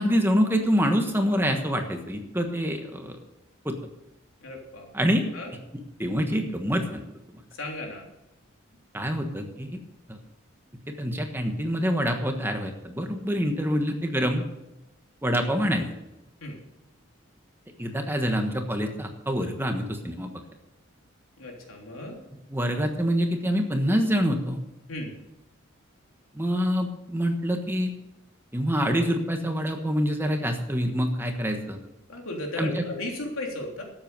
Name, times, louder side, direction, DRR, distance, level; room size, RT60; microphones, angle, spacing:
voice 1, 0.0-3.2 3.6-3.7 4.9-5.2 6.0-7.0 8.9-9.8 10.1-10.2 11.0-14.4 15.2-15.9 17.8-20.3 22.5-24.6 26.3-27.9 28.5-31.8 32.6-32.8, equal, 10° right, 4 dB, 1.3 m, -26 dB
voice 2, 4.4-4.9 5.3-5.5 7.5-8.0 16.4-16.6 21.4-22.2 24.9-25.2 32.1-33.8, left 2 dB, 85° left, 0 dB, 3.2 m, -35 dB
12.5 x 7.9 x 6.8 m, 0.91 s
head